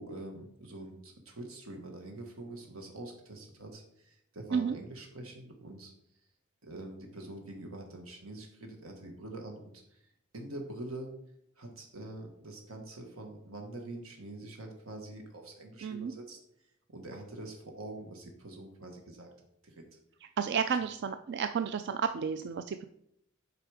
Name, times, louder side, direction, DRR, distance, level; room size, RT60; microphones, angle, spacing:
voice 1, 0.0-5.9 6.6-11.1 11.6-19.3 19.6-19.9, right 2 dB, 85° right, 3 dB, 1.4 m, -45 dB
voice 2, 15.8-16.1 20.4-22.8, right 6 dB, 55° right, 9 dB, 0.4 m, -31 dB
8.0 x 5.0 x 4.8 m, 0.74 s
head